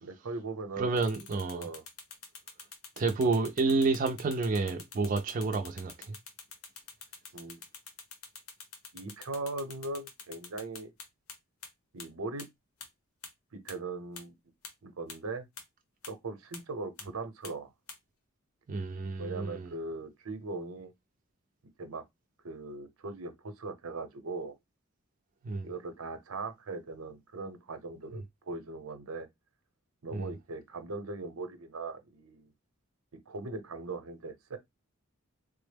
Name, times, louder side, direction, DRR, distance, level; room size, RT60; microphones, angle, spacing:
voice 1, 0.0-0.9 1.5-1.8 7.3-7.6 8.9-10.9 11.9-12.5 13.5-14.4 14.8-15.5 16.1-17.7 19.2-20.9 21.8-22.0 22.4-24.5 25.6-29.3 30.0-32.5 33.3-34.6, right 3 dB, 85° right, 0.7 m, -39 dB
voice 2, 0.8-1.7 3.0-6.2 18.7-19.7 25.4-25.7 30.1-30.3, right 3 dB, 40° right, 0.4 m, -29 dB
sound 1, 1.0-11.3 11.6-11.7 12.0-12.1 12.4-12.5 12.8-12.9 13.2-13.3 13.7-13.8 14.2-14.3 14.6-14.7 15.1-15.2 15.6-15.7 16.0-16.1 16.5-16.6 17.0-17.1 17.4-17.5 17.9-18.0, left 5 dB, 80° left, 0.7 m, -45 dB
3.5 x 2.0 x 3.3 m
head